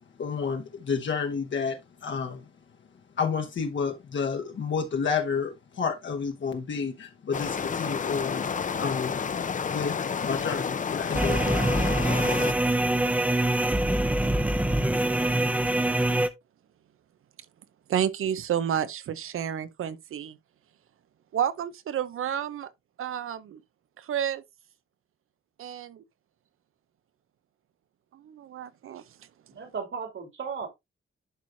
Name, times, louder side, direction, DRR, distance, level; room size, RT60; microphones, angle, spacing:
voice 1, 0.2-2.5 3.2-8.4 8.8-9.2 9.6-11.7, left 5 dB, 60° left, 1.2 m, -30 dB
sound 1, 7.3-12.5, left 6 dB, 40° left, 0.6 m, -30 dB
sound 2, 11.1-16.3, right 1 dB, 5° right, 0.7 m, -24 dB
voice 2, 17.9-20.4 21.3-22.7 23.0-23.6 24.0-24.4 25.6-26.0 28.1-29.0, right 9 dB, 85° right, 0.7 m, -30 dB
voice 3, 29.5-30.7, right 5 dB, 65° right, 2.7 m, -35 dB
11.5 x 4.7 x 2.7 m
wide cardioid pair, 130°, 21 cm